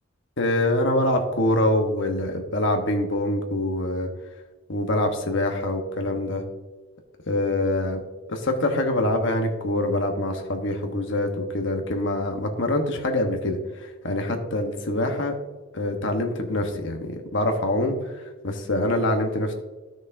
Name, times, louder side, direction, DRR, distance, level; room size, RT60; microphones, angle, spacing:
voice 1, 0.4-4.1 4.7-6.4 7.3-8.0 8.3-15.3 15.7-19.5, left 1 dB, 60° left, 4 dB, 1.1 m, -25 dB
13.5 x 6.3 x 2.7 m, 1.2 s
head